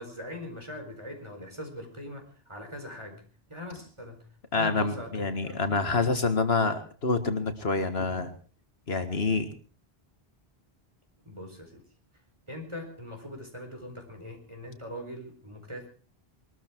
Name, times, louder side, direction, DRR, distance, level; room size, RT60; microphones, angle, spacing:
voice 1, 0.0-3.2 3.5-4.3 4.5-6.0 11.2-11.8 12.5-15.9, left 1 dB, 30° right, 4 dB, 4.4 m, -41 dB
voice 2, 4.5-8.4 8.9-9.5, left 3 dB, 80° left, 8 dB, 2.0 m, -27 dB
21.5 x 13.5 x 4.6 m, 0.40 s
omnidirectional pair, 1.0 m